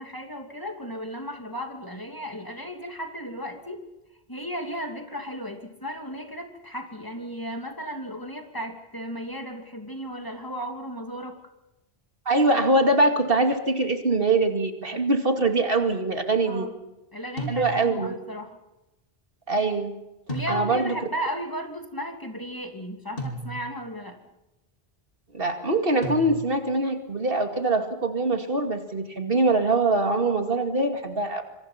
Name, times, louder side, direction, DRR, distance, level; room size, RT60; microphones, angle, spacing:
voice 1, 0.0-3.8 4.3-11.4 16.5-16.7 17.1-18.6 20.3-24.2, equal, 20° left, 4 dB, 2.8 m, -35 dB
voice 2, 12.3-16.7 17.5-18.1 19.5-20.0 20.5-20.9 25.3-31.4, right 2 dB, 65° right, 5 dB, 2.6 m, -23 dB
sound 1, 17.4-18.1 20.3-21.1 23.2-23.9 26.0-26.8, right 1 dB, 65° left, 5.0 m, -35 dB
26.0 x 25.5 x 5.9 m, 0.98 s
omnidirectional pair, 1.0 m